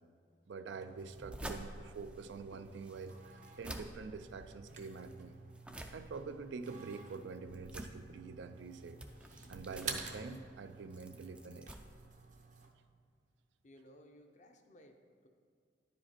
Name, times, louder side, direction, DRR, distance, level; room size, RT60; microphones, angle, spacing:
voice 1, 0.5-3.2 3.6-5.4 5.9-9.0 9.5-11.8, right 4 dB, 75° right, 10 dB, 0.4 m, -46 dB
sound 1, 0.7-12.7, right 5 dB, 40° right, 0.6 m, -51 dB
sound 2, 1.0-12.7, right 1 dB, 5° right, 0.4 m, -51 dB
voice 2, 13.6-15.3, equal, 40° left, 4 dB, 0.6 m, -60 dB
10.0 x 5.1 x 4.3 m, 2.2 s
head